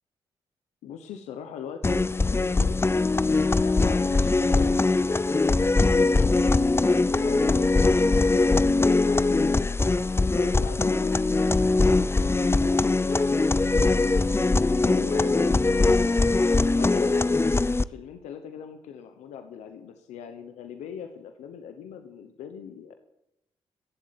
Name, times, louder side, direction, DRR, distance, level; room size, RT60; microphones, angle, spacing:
voice 1, 0.8-2.8 3.6-7.7 8.0-9.8 10.3-11.3 12.1-13.9 14.7-15.9 16.6-22.9, left 8 dB, 90° left, 8 dB, 1.1 m, -41 dB
sound 1, 1.8-17.8, left 3 dB, 20° left, 0.6 m, -22 dB
16.0 x 7.7 x 9.7 m, 0.85 s
supercardioid pair, 50°, 12 cm